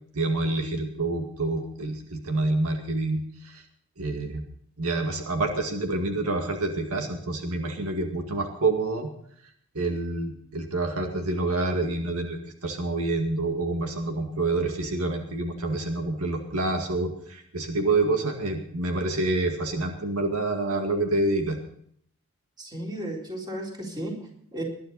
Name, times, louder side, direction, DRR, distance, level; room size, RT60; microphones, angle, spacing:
voice 1, 0.1-3.6 4.0-4.4 4.8-9.1 9.7-21.6, right 2 dB, 85° right, 4 dB, 2.0 m, -27 dB
voice 2, 22.6-24.6, right 1 dB, 20° right, -1 dB, 4.0 m, -34 dB
20.0 x 11.5 x 4.0 m, 0.63 s
head